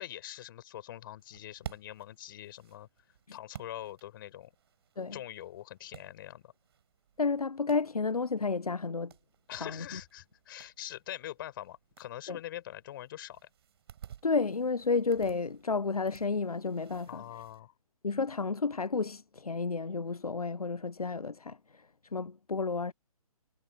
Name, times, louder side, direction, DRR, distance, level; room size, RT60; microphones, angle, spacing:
voice 1, 0.0-2.9 3.3-4.5 5.1-6.5 9.5-13.5 17.1-17.7, left 12 dB, 35° left, 5.3 m, -44 dB
sound 1, 1.2-17.6, right 9 dB, 45° right, 5.4 m, -54 dB
voice 2, 7.2-9.1 9.5-10.0 12.3-12.4 14.2-17.2 18.0-21.6 22.1-22.9, left 4 dB, 85° left, 0.6 m, -31 dB
figure-of-eight pair, 135°, 19 cm